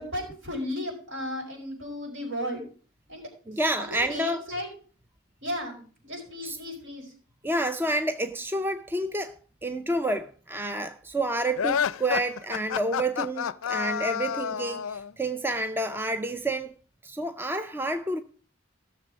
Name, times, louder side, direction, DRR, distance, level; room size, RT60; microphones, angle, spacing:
voice 1, 0.0-2.6 3.1-3.3 3.8-4.7 5.4-7.1, left 1 dB, 65° right, 4.8 m, -34 dB
voice 2, 3.5-4.4 6.4-6.6 7.4-9.3 9.6-16.7 17.0-18.2, right 1 dB, 10° right, 0.4 m, -29 dB
sound 1, 11.6-15.1, left 8 dB, 85° left, 0.4 m, -29 dB
15.5 x 6.7 x 4.9 m
head